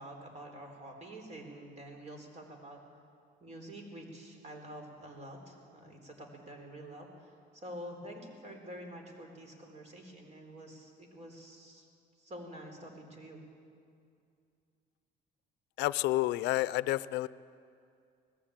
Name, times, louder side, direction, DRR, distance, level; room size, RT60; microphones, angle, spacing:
voice 1, 0.0-2.8 3.4-11.8 12.2-13.4, right 1 dB, 40° right, 2 dB, 4.3 m, -47 dB
voice 2, 15.8-17.3, left 17 dB, 85° left, 18 dB, 0.5 m, -30 dB
19.5 x 15.0 x 8.8 m, 2.4 s
cardioid pair, 110°, 17 cm